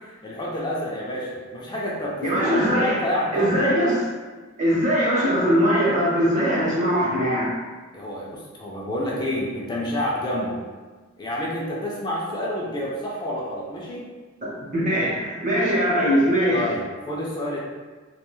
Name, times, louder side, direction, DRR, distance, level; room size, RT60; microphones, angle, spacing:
voice 1, 0.0-3.7 7.9-10.6 11.2-14.0 16.5-17.6, left 1 dB, 20° left, -5 dB, 0.4 m, -29 dB
voice 2, 2.2-3.0 3.3-4.0 4.6-7.5 14.4-16.6, equal, 40° right, -6 dB, 0.8 m, -21 dB
2.3 x 2.2 x 3.0 m, 1.4 s
head